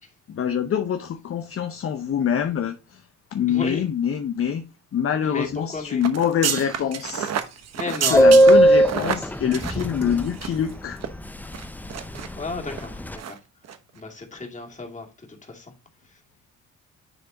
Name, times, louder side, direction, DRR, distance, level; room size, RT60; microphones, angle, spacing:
voice 1, 0.3-3.0 3.3-4.6 4.9-7.3 7.9-11.0, left 8 dB, 50° left, 0.8 m, -25 dB
voice 2, 3.5-3.8 5.2-6.0 7.8-8.4 12.4-13.4 14.0-15.7 16.0-16.2, left 3 dB, 25° left, 2.4 m, -34 dB
sound 1, 6.0-10.7 11.0-11.1 11.5-12.3 12.7-12.9 13.2-13.4 13.6-13.8, right 8 dB, 60° right, 1.1 m, -30 dB
Subway metro underground, 8.1-10.3 10.6-10.7 10.9-11.2 11.4-11.9 12.1-13.1, right 1 dB, 5° left, 0.6 m, -16 dB
10.0 x 3.4 x 3.9 m
cardioid pair, 90°, 30 cm